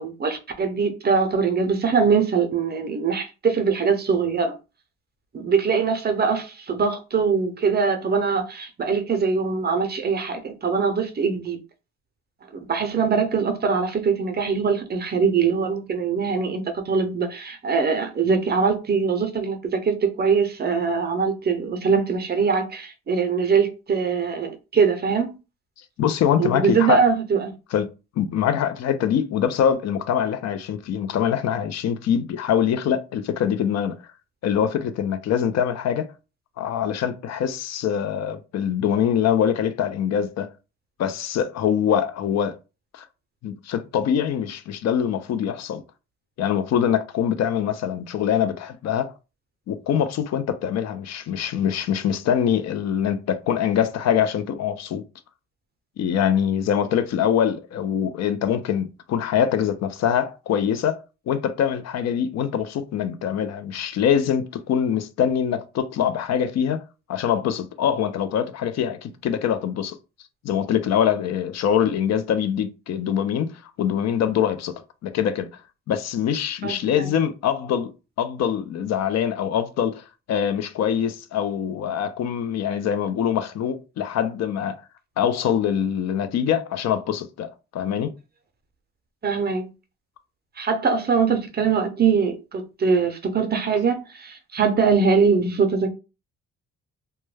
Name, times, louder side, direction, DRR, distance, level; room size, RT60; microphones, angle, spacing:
voice 1, 0.0-4.5 5.3-11.6 12.7-25.3 26.4-27.5 76.6-77.1 89.2-89.7 90.6-95.9, right 5 dB, 35° right, 0.5 m, -22 dB
voice 2, 26.0-27.1 27.7-27.9 28.2-34.0 34.4-36.1 36.6-40.5 41.0-42.6 42.9-43.1 43.4-45.8 46.4-49.1 49.7-55.0 56.0-66.8 67.1-70.0 70.4-74.7 75.0-75.5 75.9-77.9 78.2-84.8 85.2-88.1, left 8 dB, 60° left, 0.4 m, -24 dB
2.2 x 2.2 x 3.2 m
cardioid pair, 90°, 30 cm